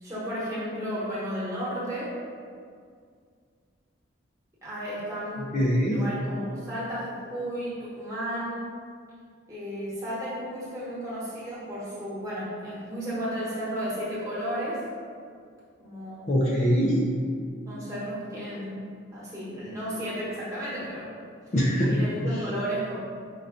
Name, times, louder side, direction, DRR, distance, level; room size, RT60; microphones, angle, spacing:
voice 1, 0.0-2.2 4.6-5.6 5.9-8.7 9.5-14.9 15.8-16.3 17.7-21.1 21.9-23.0, equal, 15° right, -9 dB, 1.1 m, -33 dB
voice 2, 5.4-6.1 16.3-17.0 21.5-22.0 22.3-22.4, equal, 35° left, -4 dB, 0.4 m, -23 dB
5.4 x 2.3 x 3.7 m, 2.2 s
head